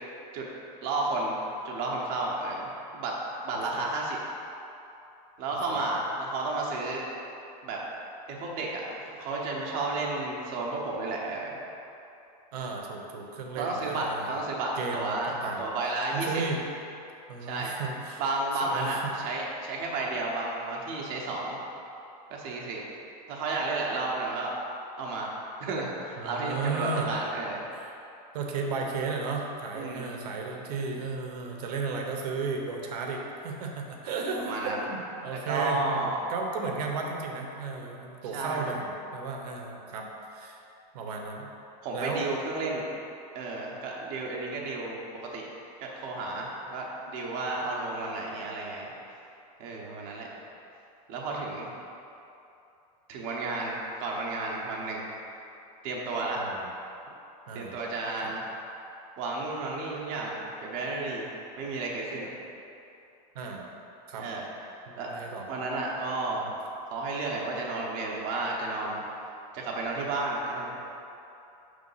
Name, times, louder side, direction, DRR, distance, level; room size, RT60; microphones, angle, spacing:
voice 1, 0.8-1.4 1.6-3.2 3.4-4.2 5.4-7.0 7.6-7.8 8.3-11.6 13.6-16.4 17.5-17.8 18.2-21.6 22.3-22.8 23.3-24.5 25.0-25.3 25.6-27.6 29.7-30.2 34.4-34.9 35.5-36.2 38.3-38.7 41.8-42.9 43.3-45.0 45.3-45.5 45.8-48.9 49.6-50.3 51.1-51.7 53.1-55.1 55.8-56.4 57.5-58.4 59.2-61.3 61.6-62.3 64.2-64.4 65.0-65.1 65.5-66.4 66.9-69.0 69.5-70.8, right 2 dB, 35° right, -3 dB, 0.8 m, -32 dB
voice 2, 12.5-14.3 14.8-15.6 16.1-16.6 17.3-18.2 18.6-19.1 26.2-27.1 27.7-27.9 28.3-40.1 40.3-40.6 40.9-41.5 41.9-42.2 56.4-56.7 57.5-57.7 58.2-58.3 63.3-63.6 64.1-64.2 65.1-65.5 66.4-66.5, right 4 dB, 70° right, 1 dB, 0.9 m, -34 dB
6.4 x 3.4 x 5.5 m, 2.8 s
supercardioid pair, 180°, 21 cm